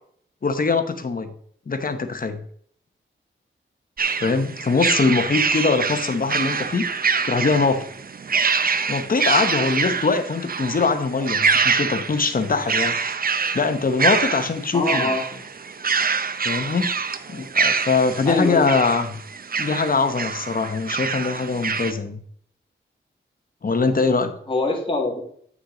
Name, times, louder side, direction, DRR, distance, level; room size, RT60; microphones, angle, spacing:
voice 1, 0.4-1.3 1.7-2.4 4.2-6.9 7.2-7.8 8.9-13.0 13.5-15.1 16.4-16.9 17.3-19.1 19.6-22.2 23.6-24.3, left 4 dB, 45° left, 8 dB, 0.9 m, -22 dB
sound 1, 4.0-21.9, right 5 dB, 45° right, 0.6 m, -25 dB
voice 2, 14.7-15.2 18.3-18.9 24.5-25.2, left 2 dB, 25° left, -1 dB, 2.0 m, -24 dB
9.0 x 6.2 x 3.8 m, 0.62 s
wide cardioid pair, 90°, 21 cm